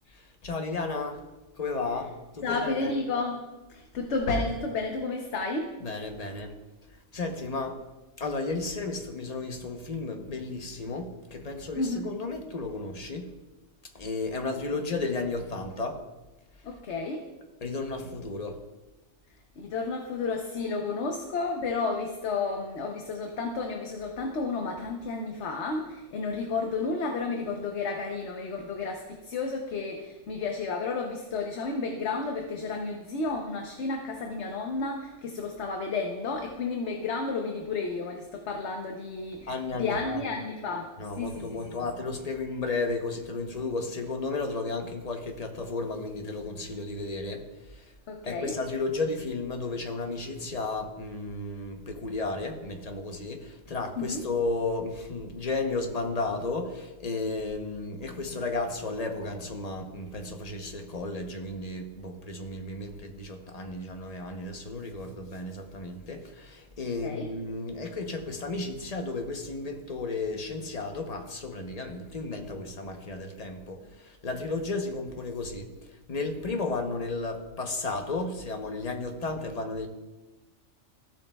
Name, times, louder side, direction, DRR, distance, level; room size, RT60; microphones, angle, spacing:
voice 1, 0.1-1.2 1.5-3.0 5.8-6.5 7.1-7.8 8.2-13.3 13.9-16.0 17.6-18.6 39.5-40.2 41.0-47.9 48.2-75.7 76.1-79.9, left 3 dB, 35° left, 4 dB, 0.8 m, -33 dB
voice 2, 2.4-3.4 3.7-5.7 11.8-12.0 16.6-17.2 19.6-40.9 41.2-41.6 48.1-48.5 54.0-54.2 67.0-67.3, left 3 dB, 65° left, 2 dB, 1.1 m, -32 dB
15.0 x 7.2 x 2.3 m, 1.1 s
omnidirectional pair, 1.3 m